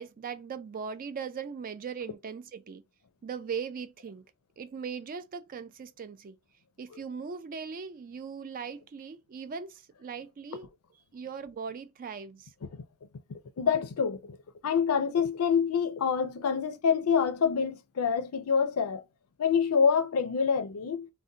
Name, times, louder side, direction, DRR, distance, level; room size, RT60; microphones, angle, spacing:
voice 1, 0.0-2.8 3.2-4.2 4.6-6.4 6.8-10.7 11.1-12.5 16.4-16.6, right 6 dB, 40° right, 0.3 m, -39 dB
voice 2, 13.3-14.4 14.6-19.0 19.4-21.1, left 6 dB, 75° left, 0.5 m, -26 dB
2.6 x 2.1 x 3.6 m
head